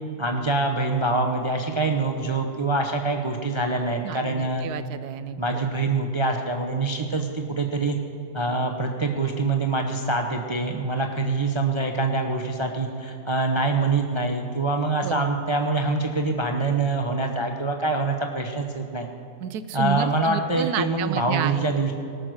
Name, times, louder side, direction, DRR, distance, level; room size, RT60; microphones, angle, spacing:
voice 1, 0.2-4.7 5.4-8.0 8.3-19.1 19.7-21.9, right 3 dB, 30° right, 3 dB, 0.5 m, -25 dB
voice 2, 4.0-5.7 15.0-15.3 19.4-21.6, right 10 dB, 85° right, 13 dB, 1.2 m, -31 dB
18.5 x 6.4 x 6.2 m, 2.8 s
omnidirectional pair, 1.6 m